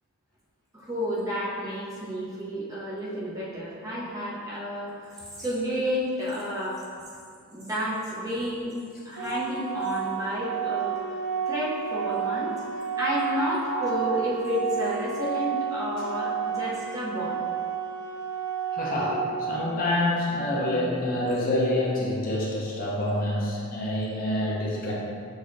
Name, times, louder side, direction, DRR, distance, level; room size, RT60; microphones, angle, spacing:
voice 1, 0.7-6.8 7.5-8.7 9.0-11.2 11.5-12.5 13.0-17.4, equal, 15° right, -7 dB, 0.6 m, -31 dB
Organ, 9.2-20.2, right 7 dB, 70° right, 0.6 m, -31 dB
voice 2, 13.3-13.8 18.7-24.9, left 1 dB, 40° left, -5 dB, 0.7 m, -27 dB
6.2 x 2.8 x 2.5 m, 2.3 s
head